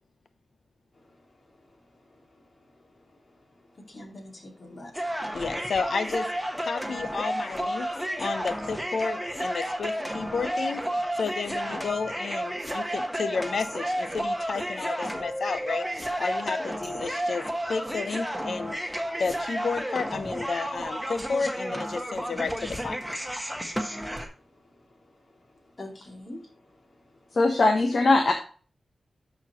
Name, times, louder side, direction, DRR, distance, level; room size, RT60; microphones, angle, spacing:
voice 1, 3.7-5.1 25.8-26.4 26.7-26.8, left 1 dB, 40° left, 0 dB, 2.5 m, -43 dB
sound 1, 4.9-24.3, equal, ahead, 1.3 m, -32 dB
voice 2, 5.3-6.3 6.6-7.9 8.2-10.8 11.2-18.8 19.2-23.0, left 4 dB, 75° left, 11 dB, 0.8 m, -31 dB
voice 3, 27.3-28.3, left 2 dB, 60° left, 2 dB, 1.1 m, -20 dB
12.0 x 4.4 x 3.0 m, 0.40 s
wide cardioid pair, 90°, 0 cm